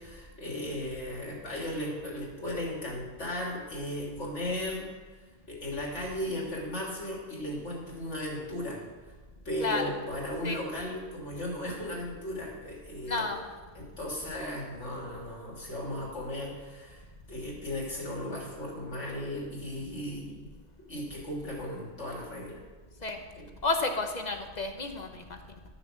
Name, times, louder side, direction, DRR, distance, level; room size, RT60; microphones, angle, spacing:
voice 1, 0.0-4.9 5.5-8.8 9.4-13.3 13.7-20.5 20.9-22.6 23.3-23.5, left 1 dB, 75° left, -3 dB, 3.4 m, -36 dB
voice 2, 9.6-9.9 10.4-10.6 13.1-13.4 23.0-23.2 23.6-25.2, left 3 dB, 40° left, 4 dB, 1.1 m, -31 dB
12.5 x 7.1 x 6.5 m, 1.4 s
omnidirectional pair, 1.2 m